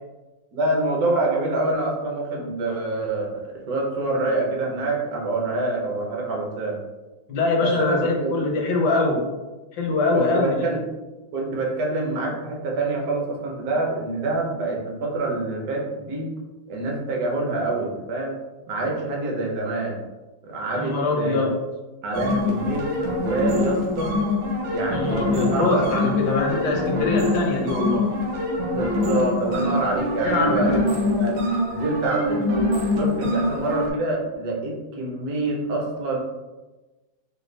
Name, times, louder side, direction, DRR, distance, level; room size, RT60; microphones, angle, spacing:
voice 1, 0.5-6.8 7.6-8.3 10.1-10.8 11.3-16.3 16.7-18.3 18.7-20.0 20.5-21.5 22.0-24.1 24.7-26.5 28.7-31.3 31.7-32.7 32.9-36.2, right 2 dB, 60° right, -1 dB, 1.2 m, -26 dB
voice 2, 7.3-9.2 9.7-10.7 20.7-21.5 24.9-28.1 30.2-30.8, left 3 dB, 65° left, 0 dB, 1.3 m, -23 dB
sound 1, 22.1-33.9, left 2 dB, 80° right, 1.5 m, -24 dB
5.0 x 2.3 x 3.2 m, 1.1 s
omnidirectional pair, 2.1 m